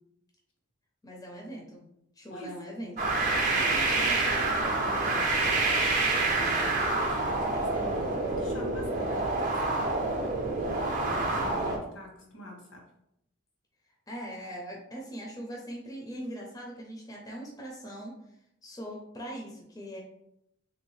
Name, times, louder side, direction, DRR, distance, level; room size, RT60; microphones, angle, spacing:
voice 1, 1.0-1.9 2.2-3.1 11.2-11.3 14.1-18.1 18.6-20.0, equal, 15° left, -2 dB, 0.6 m, -41 dB
sound 1, 3.0-11.8, right 2 dB, 40° right, 0.5 m, -27 dB
voice 2, 3.5-5.8 6.0-9.6 10.5-12.8, equal, 80° left, -1 dB, 1.3 m, -44 dB
3.5 x 2.7 x 3.1 m, 0.78 s
head